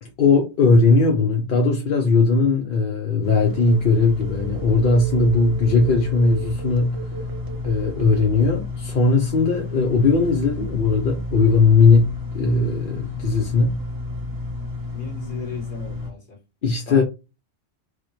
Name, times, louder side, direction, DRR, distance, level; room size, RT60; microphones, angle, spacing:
voice 1, 0.0-7.0 7.6-13.8 16.6-17.0, left 4 dB, 55° left, 0.7 m, -18 dB
sound 1, 3.2-16.1, left 2 dB, 20° right, 1.0 m, -31 dB
Telephone, 3.5-8.7, right 7 dB, 85° right, 1.2 m, -37 dB
voice 2, 14.9-16.4 16.8-17.0, left 5 dB, 35° left, 1.7 m, -36 dB
4.9 x 2.1 x 3.0 m
omnidirectional pair, 1.3 m